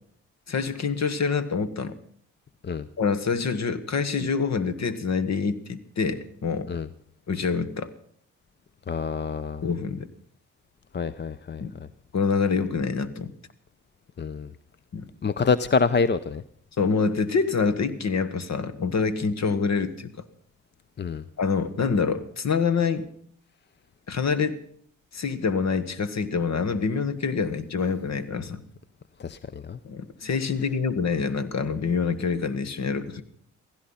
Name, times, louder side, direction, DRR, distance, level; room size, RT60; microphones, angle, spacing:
voice 1, 0.5-2.0 3.0-6.7 7.3-7.9 9.6-10.1 11.6-11.7 12.1-13.3 14.9-15.1 16.8-20.2 21.4-23.1 24.1-24.6 25.1-28.6 29.8-33.2, left 5 dB, 55° left, 13 dB, 1.5 m, -26 dB
voice 2, 8.9-9.7 10.9-11.9 14.2-14.5 15.2-16.4 21.0-21.2 29.2-29.8, left 5 dB, 30° left, 16 dB, 0.7 m, -26 dB
16.5 x 15.5 x 5.7 m, 0.64 s
supercardioid pair, 55°, 33 cm